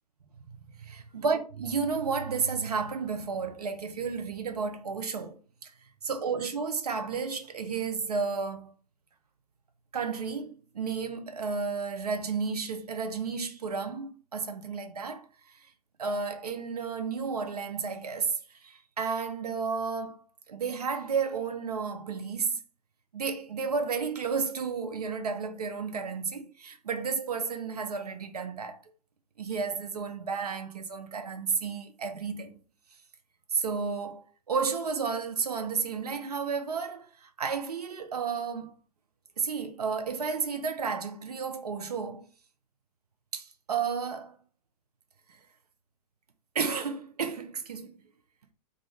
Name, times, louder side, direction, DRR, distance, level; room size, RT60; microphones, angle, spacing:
voice 1, 0.8-5.7 6.0-8.7 9.9-15.3 16.0-22.6 23.1-28.8 29.4-32.6 33.5-38.7 39.4-42.2 43.3-44.3 46.5-47.9, right 5 dB, 75° right, 0.6 m, -32 dB
2.5 x 2.4 x 3.1 m
figure-of-eight pair, 105°, 20 cm